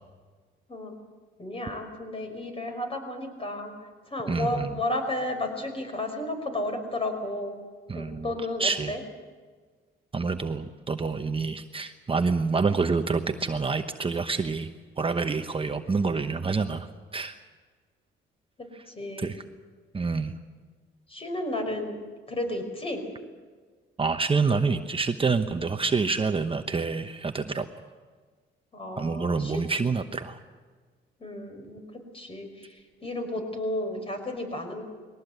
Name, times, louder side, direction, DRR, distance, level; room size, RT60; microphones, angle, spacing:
voice 1, 1.4-3.7 4.1-7.6 7.9-9.0 18.6-19.3 21.1-23.0 28.7-29.6 31.2-31.8 32.1-34.8, left 1 dB, 30° left, 5 dB, 5.5 m, -33 dB
voice 2, 4.3-4.7 7.9-8.3 8.6-9.0 10.1-14.7 15.0-17.4 19.2-19.4 19.9-20.3 24.0-27.7 29.0-30.4, right 4 dB, 25° right, 7 dB, 1.0 m, -27 dB
21.5 x 18.0 x 8.2 m, 1.5 s
cardioid pair, 90°, 20 cm